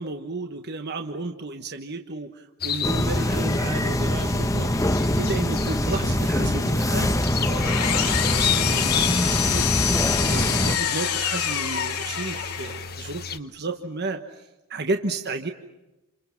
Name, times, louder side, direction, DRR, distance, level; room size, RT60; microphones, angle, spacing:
voice 1, 0.0-4.9 5.2-15.5, right 3 dB, 50° right, 5 dB, 1.3 m, -33 dB
sound 1, 2.6-13.4, left 7 dB, 45° left, 1.2 m, -33 dB
sound 2, 2.8-10.8, left 1 dB, 15° left, 0.9 m, -24 dB
Engine, 7.2-12.9, left 8 dB, 80° left, 3.0 m, -26 dB
29.5 x 28.5 x 5.9 m, 1.0 s
head